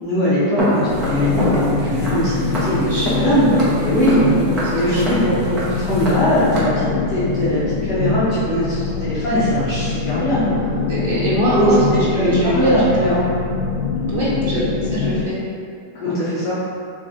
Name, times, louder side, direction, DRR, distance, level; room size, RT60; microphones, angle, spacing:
voice 1, 0.0-4.2 4.7-10.7 11.5-11.7 12.1-13.2 14.1-14.3 14.5-14.6 15.9-16.6, equal, 25° left, -11 dB, 0.9 m, -20 dB
Walk footsteps, 0.6-6.6, equal, 20° right, 0.7 m, -25 dB
sound 1, 0.9-15.2, left 5 dB, 60° left, 0.3 m, -24 dB
voice 2, 2.8-3.4 4.0-5.1 8.7-9.0 10.9-12.7 14.1-14.6 14.9-15.4, right 1 dB, 65° right, -9 dB, 1.3 m, -23 dB
3.1 x 2.6 x 3.7 m, 2.4 s
supercardioid pair, 180°, 0 cm